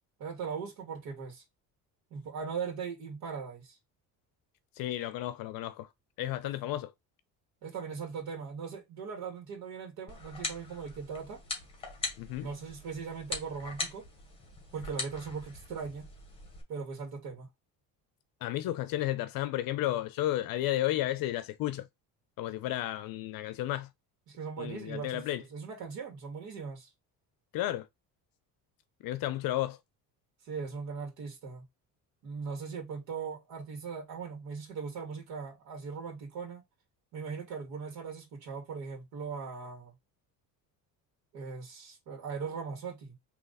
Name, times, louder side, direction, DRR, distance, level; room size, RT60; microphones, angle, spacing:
voice 1, 0.2-1.4 2.1-3.8 6.4-6.5 7.6-11.4 12.4-14.1 14.7-16.1 16.7-17.5 24.3-25.2 25.5-26.9 30.4-31.6 32.2-36.6 37.1-39.9 41.3-43.2, right 5 dB, 70° right, 1.8 m, -39 dB
voice 2, 4.8-5.9 6.2-6.9 12.2-12.5 18.4-21.9 22.4-23.9 24.6-25.4 27.5-27.9 29.0-29.8, left 14 dB, 65° left, 0.6 m, -32 dB
sound 1, 10.1-16.6, left 3 dB, 15° left, 1.6 m, -41 dB
3.8 x 3.0 x 4.0 m
cardioid pair, 155°, 37 cm